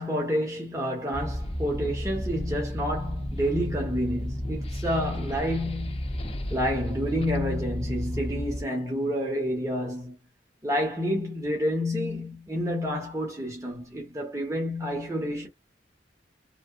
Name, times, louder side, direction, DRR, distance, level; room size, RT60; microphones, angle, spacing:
voice 1, 0.0-6.1 6.5-10.2 10.6-15.5, equal, 15° right, 1.1 m, -29 dB
sound 1, 1.1-8.6, equal, 35° left, 0.7 m, -32 dB
3.3 x 2.1 x 2.4 m
head